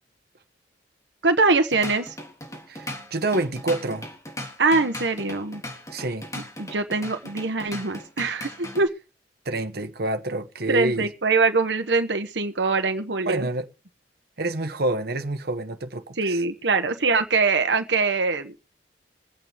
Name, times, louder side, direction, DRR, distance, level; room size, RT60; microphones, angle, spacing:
voice 1, 1.2-2.1 4.6-5.6 6.6-8.9 10.7-13.5 16.2-18.5, right 3 dB, 80° right, 1.2 m, -23 dB
Drum kit / Drum, 1.5-8.9, left 1 dB, 20° left, 3.5 m, -38 dB
voice 2, 2.7-4.1 5.9-6.3 9.4-11.1 13.2-13.7 14.4-16.4, right 2 dB, 60° right, 1.3 m, -27 dB
23.5 x 8.7 x 3.5 m
head